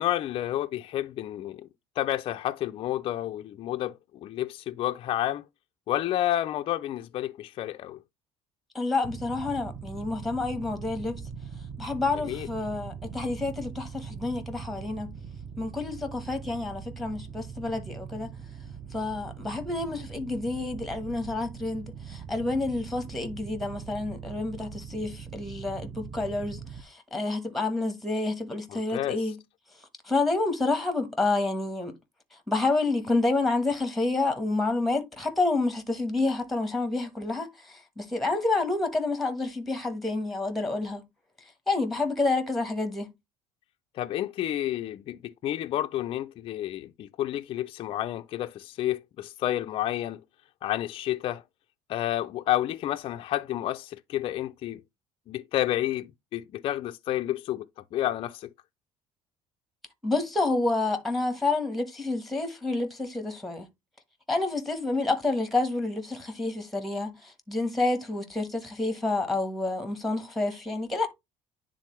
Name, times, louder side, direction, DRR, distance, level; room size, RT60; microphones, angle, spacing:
voice 1, 0.0-1.7 2.0-5.4 5.9-8.0 12.2-12.5 28.7-29.2 43.9-50.2 50.6-51.4 51.9-54.8 55.3-57.7 57.9-58.5, left 13 dB, 45° left, 0.4 m, -30 dB
voice 2, 8.7-11.2 11.8-15.1 15.6-18.3 18.9-29.3 30.0-31.9 32.5-41.0 41.7-43.1 60.0-63.7 64.3-71.1, left 3 dB, ahead, 1.3 m, -29 dB
sound 1, 9.0-26.8, right 6 dB, 15° right, 0.7 m, -41 dB
9.8 x 3.8 x 3.2 m
cardioid pair, 145°, 13 cm